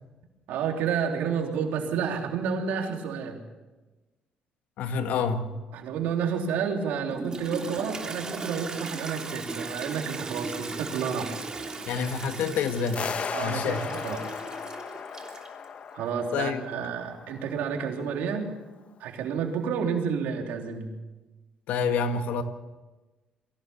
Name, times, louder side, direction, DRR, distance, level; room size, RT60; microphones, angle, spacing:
voice 1, 0.5-3.4 5.7-11.4 13.3-13.8 14.0-14.2 15.9-18.5 19.0-20.9, right 6 dB, 90° right, 2 dB, 3.4 m, -30 dB
voice 2, 4.8-5.6 11.9-13.1 13.4-13.9 16.3-16.9 21.7-22.4, left 5 dB, 80° left, 7 dB, 1.8 m, -28 dB
Toilet flush, 7.1-15.6, right 3 dB, 25° right, 3.1 m, -37 dB
sound 1, 12.9-17.9, left 7 dB, 50° left, 1.0 m, -36 dB
23.5 x 15.5 x 7.1 m, 1.2 s
cardioid pair, 110°, 3 cm